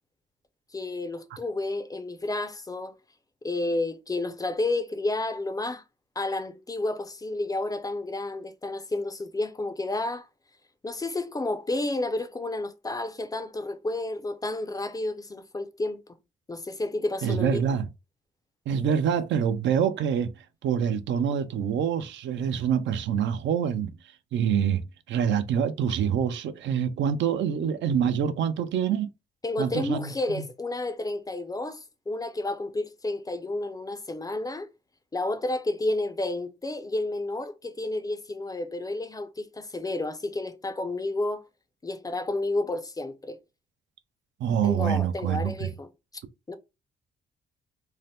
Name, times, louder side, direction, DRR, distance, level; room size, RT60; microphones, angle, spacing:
voice 1, 0.7-3.0 3.4-5.8 6.2-10.3 10.8-16.0 16.5-17.6 29.4-34.7 35.1-41.4 41.8-43.4 44.6-45.9 46.5-46.6, left 2 dB, 20° left, 0.4 m, -31 dB
voice 2, 17.2-17.9 18.7-20.3 20.6-23.9 24.3-29.1 29.6-30.4 44.4-45.7, right 8 dB, 65° right, 0.5 m, -26 dB
2.7 x 2.0 x 3.3 m
cardioid pair, 90°, 20 cm